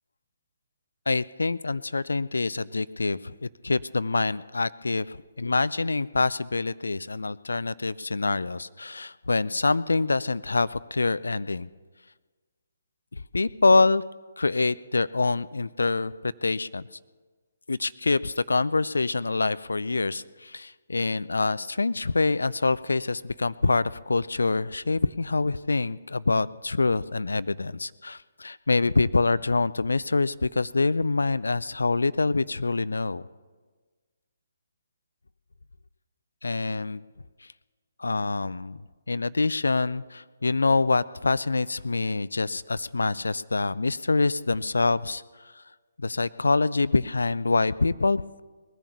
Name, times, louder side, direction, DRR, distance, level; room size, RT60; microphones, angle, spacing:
voice 1, 1.1-11.7 13.1-14.0 14.4-16.8 17.7-33.2 36.4-37.0 38.0-45.6 46.0-48.2, left 3 dB, 70° left, 17 dB, 0.4 m, -25 dB
20.0 x 10.5 x 6.8 m, 1.4 s
figure-of-eight pair, 135°, 0 cm